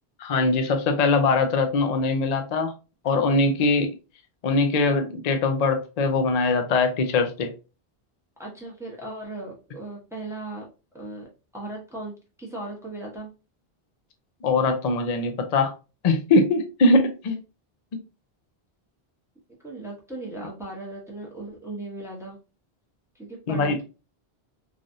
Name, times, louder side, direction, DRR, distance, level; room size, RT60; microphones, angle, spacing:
voice 1, 0.2-2.7 3.0-3.9 4.4-7.5 14.4-15.7 16.0-17.4 23.5-23.8, left 3 dB, 50° left, 6 dB, 0.5 m, -22 dB
voice 2, 8.4-10.7 10.9-11.3 11.5-13.3 19.6-22.4 23.1-23.8, right 2 dB, 5° right, -2 dB, 0.8 m, -37 dB
3.3 x 2.4 x 2.6 m, 0.31 s
omnidirectional pair, 1.1 m